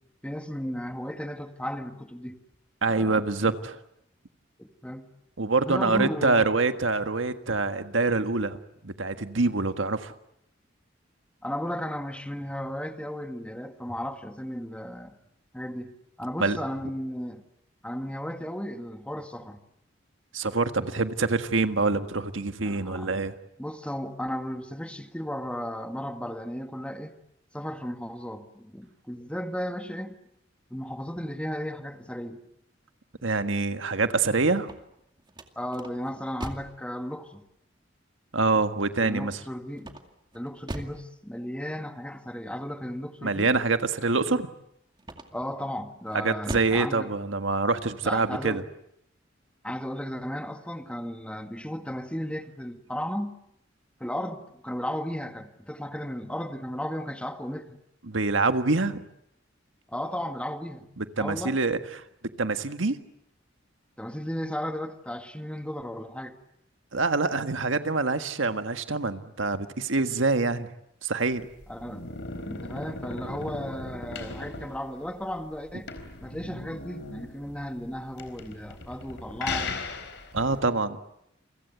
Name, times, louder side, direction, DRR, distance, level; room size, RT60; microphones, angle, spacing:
voice 1, 0.2-2.4 2.9-3.2 4.6-5.1 5.6-6.5 11.4-15.1 15.5-17.4 17.8-19.6 22.6-23.1 23.6-27.1 27.5-30.1 30.7-32.4 35.6-37.4 39.0-39.9 40.3-43.5 45.3-47.1 48.0-48.6 49.6-53.3 54.0-57.8 59.9-60.9 61.2-61.6 62.9-63.0 64.0-66.4 71.7-72.1 72.4-75.9 76.2-79.7, equal, 5° left, 1.9 m, -35 dB
voice 2, 2.8-3.8 5.4-8.6 8.8-10.1 16.4-16.6 20.3-23.3 33.2-34.7 38.3-39.4 43.2-44.5 46.1-48.6 58.1-59.0 61.0-62.0 62.4-63.0 66.9-70.7 71.0-71.5 80.3-81.0, right 3 dB, 85° right, 1.6 m, -25 dB
sound 1, 34.5-36.8 39.8-41.1 45.0-45.6 46.1-46.9, right 1 dB, 25° right, 2.3 m, -40 dB
sound 2, 71.3-80.6, left 3 dB, 65° left, 4.3 m, -38 dB
29.0 x 23.5 x 8.1 m
head